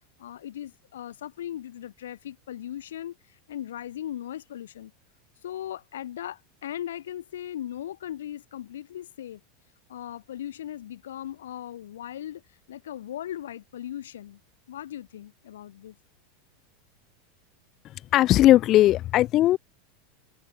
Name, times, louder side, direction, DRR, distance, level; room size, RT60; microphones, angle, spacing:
voice 1, 0.0-4.9 5.4-9.4 9.9-12.4 12.7-14.4 14.7-16.0, left 11 dB, 85° left, 3.5 m, -38 dB
voice 2, 18.1-19.6, left 14 dB, 45° left, 1.0 m, -18 dB
hypercardioid pair, 110°, 0 cm